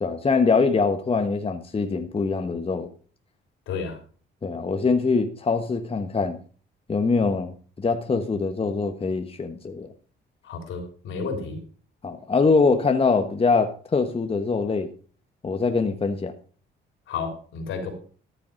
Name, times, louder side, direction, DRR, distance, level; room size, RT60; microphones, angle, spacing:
voice 1, 0.0-2.9 4.4-6.4 6.9-7.5 7.8-9.9 12.0-14.9 15.4-16.3, left 4 dB, 30° left, 1.2 m, -23 dB
voice 2, 3.7-4.0 10.4-11.6 17.1-17.9, left 5 dB, 80° left, 3.7 m, -31 dB
13.5 x 7.0 x 5.1 m
cardioid pair, 90°, 20 cm